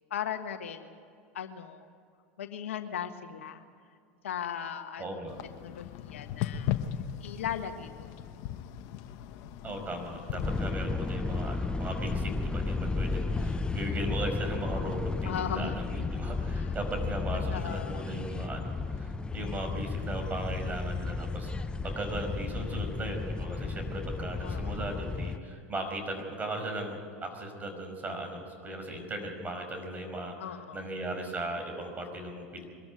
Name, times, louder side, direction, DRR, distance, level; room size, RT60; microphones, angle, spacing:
voice 1, 0.1-0.9 1.3-1.9 2.4-3.6 4.2-5.0 5.6-6.7 7.2-8.3 15.2-15.8 16.5-16.7 17.5-18.1 24.4-24.9 30.4-30.9, left 9 dB, 85° left, 7 dB, 1.5 m, -37 dB
voice 2, 5.0-5.3 9.6-21.5 21.8-30.3 30.7-32.7, right 1 dB, 25° right, 4 dB, 5.4 m, -37 dB
sound 1, 5.3-10.7, left 11 dB, 55° left, 1.1 m, -37 dB
sound 2, 10.4-25.4, left 3 dB, 15° left, 0.8 m, -33 dB
22.5 x 14.0 x 9.4 m, 2.3 s
hypercardioid pair, 100°, 7 cm